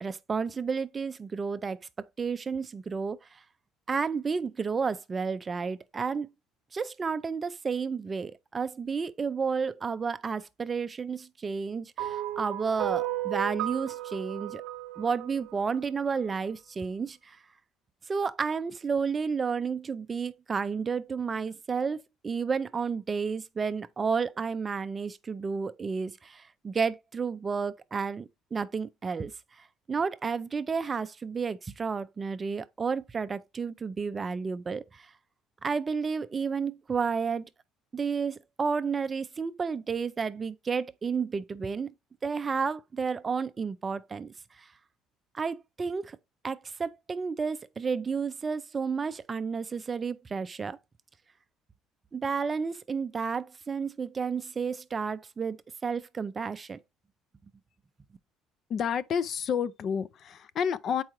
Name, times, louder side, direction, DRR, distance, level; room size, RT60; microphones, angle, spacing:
voice 1, 0.0-1.8 2.2-3.4 3.9-6.3 6.7-14.6 15.0-17.4 18.1-29.3 29.6-35.1 35.6-37.5 37.9-41.9 42.2-44.7 45.3-46.2 46.4-50.8 52.1-56.8, right 5 dB, 25° right, 0.4 m, -31 dB
sound 1, 12.0-16.3, right 15 dB, 75° right, 0.7 m, -34 dB
voice 2, 58.7-61.0, left 7 dB, 45° left, 0.4 m, -29 dB
7.7 x 4.7 x 2.9 m
cardioid pair, 130°, 0 cm